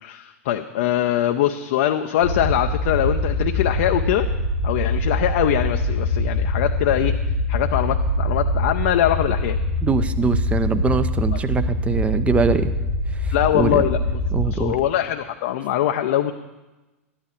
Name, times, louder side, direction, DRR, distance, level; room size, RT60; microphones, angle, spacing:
voice 1, 0.0-4.3 4.6-7.2 7.5-9.6 13.3-14.2 14.5-16.3, left 11 dB, 55° left, 5 dB, 0.6 m, -22 dB
sound 1, 2.2-14.6, left 1 dB, 90° right, 2.2 m, -23 dB
voice 2, 9.8-12.7 13.1-13.8 14.3-14.8, right 5 dB, 15° right, 11 dB, 0.7 m, -23 dB
13.0 x 10.5 x 4.4 m, 1.1 s
figure-of-eight pair, 90°, 8 cm